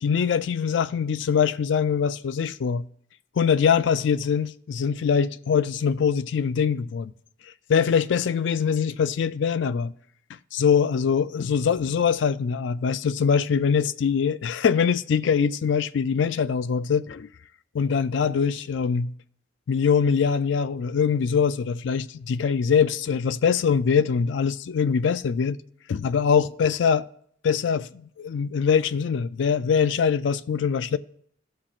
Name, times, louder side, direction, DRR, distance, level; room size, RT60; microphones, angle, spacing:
voice 1, 0.0-2.9 3.4-7.1 7.7-9.9 10.5-17.3 17.7-19.1 19.7-25.6 25.9-27.1 27.4-31.0, left 6 dB, 65° left, 0.3 m, -23 dB
16.0 x 5.7 x 2.4 m
head